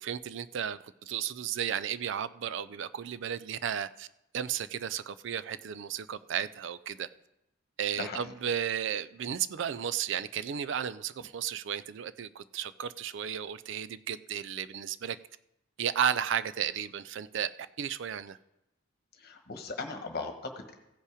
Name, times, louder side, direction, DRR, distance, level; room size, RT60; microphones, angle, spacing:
voice 1, 0.0-4.1 4.3-7.1 7.8-15.2 15.8-17.5 17.8-18.4, right 8 dB, 65° right, 15 dB, 0.4 m, -33 dB
voice 2, 7.9-8.3 19.1-20.7, left 3 dB, 55° left, 5 dB, 1.4 m, -38 dB
16.0 x 5.5 x 4.9 m, 0.89 s
head